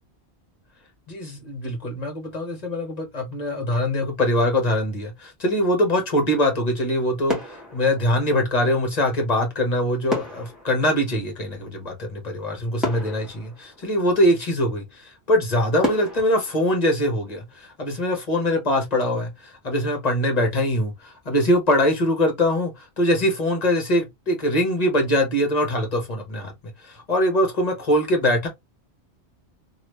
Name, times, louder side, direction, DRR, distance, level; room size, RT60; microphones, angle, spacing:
voice 1, 1.1-26.5 26.8-28.5, left 1 dB, 40° left, 1.2 m, -23 dB
sound 1, 6.6-7.0 7.3-8.7 10.1-12.0 12.4-12.5 12.8-14.4 14.9-15.0 15.8-17.7 18.0-18.3, left 1 dB, ahead, 1.4 m, -33 dB
3.0 x 2.4 x 3.1 m
omnidirectional pair, 1.1 m